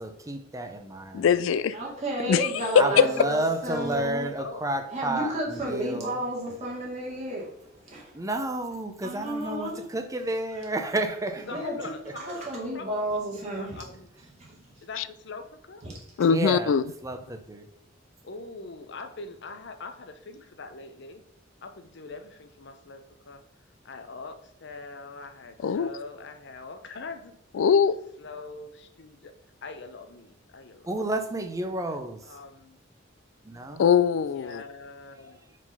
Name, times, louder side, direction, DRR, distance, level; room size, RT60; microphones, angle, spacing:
voice 1, 0.0-1.3 2.7-6.2 8.1-11.5 16.3-16.8 17.0-17.6 30.9-32.2 33.4-33.8, right 1 dB, 15° right, 7 dB, 0.6 m, -31 dB
voice 2, 1.1-1.8 2.3-2.8 15.0-15.1 16.2-16.8 25.6-25.9 27.5-28.0 33.8-34.6, left 7 dB, 85° left, 16 dB, 0.3 m, -22 dB
voice 3, 1.7-4.3 4.9-7.5 7.8-8.1 9.0-9.8 11.4-11.8 12.2-13.8 14.4-14.6 15.8-15.9, right 1 dB, 35° right, -4 dB, 2.2 m, -32 dB
voice 4, 11.5-12.8 13.1-14.1 14.8-15.8 18.2-21.2 21.6-23.4 23.8-27.3 28.2-29.3 29.6-30.9 32.2-32.8 34.3-35.6, left 3 dB, 65° left, 8 dB, 0.7 m, -42 dB
4.9 x 3.9 x 5.5 m, 0.74 s
head